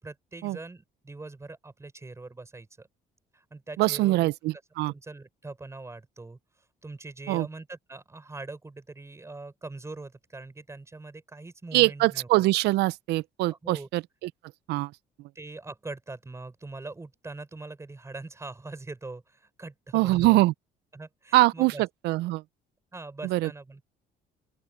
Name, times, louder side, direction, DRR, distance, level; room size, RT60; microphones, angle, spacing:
voice 1, 0.0-2.9 3.3-4.3 4.9-6.4 6.8-12.3 13.6-13.9 15.3-20.4 20.9-21.8 22.9-23.8, right 3 dB, 15° right, 5.8 m, -42 dB
voice 2, 3.8-4.9 7.3-7.5 11.7-14.3 14.7-14.9 19.9-20.5 21.3-22.4 23.2-23.5, right 19 dB, 80° right, 0.4 m, -23 dB
open air
cardioid pair, 110°, 17 cm